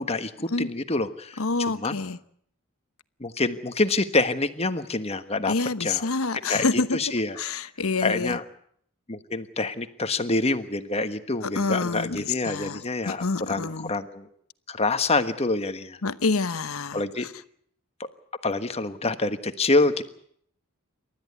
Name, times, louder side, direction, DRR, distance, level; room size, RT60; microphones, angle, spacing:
voice 1, 0.0-1.4 1.8-2.0 3.2-5.5 5.8-6.0 6.5-7.4 8.0-8.4 9.1-14.3 14.7-16.0 16.9-17.3 18.0-18.1 18.4-20.0, left 2 dB, 30° left, 1.4 m, -26 dB
voice 2, 1.4-2.2 5.4-7.0 7.4-8.4 11.4-13.9 16.0-17.0, left 3 dB, 75° left, 1.1 m, -27 dB
28.5 x 13.5 x 9.5 m
head